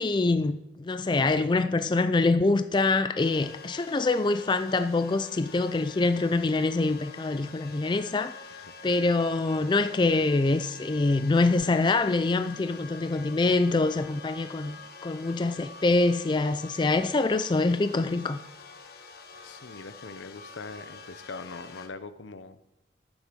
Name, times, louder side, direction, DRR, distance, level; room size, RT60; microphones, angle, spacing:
voice 1, 0.0-8.3 8.8-14.8 15.0-18.4, left 3 dB, 25° left, 0.4 m, -25 dB
sound 1, 3.2-21.9, left 4 dB, 55° left, 1.2 m, -46 dB
voice 2, 19.4-22.6, left 4 dB, 80° left, 0.7 m, -42 dB
9.6 x 7.2 x 6.7 m
head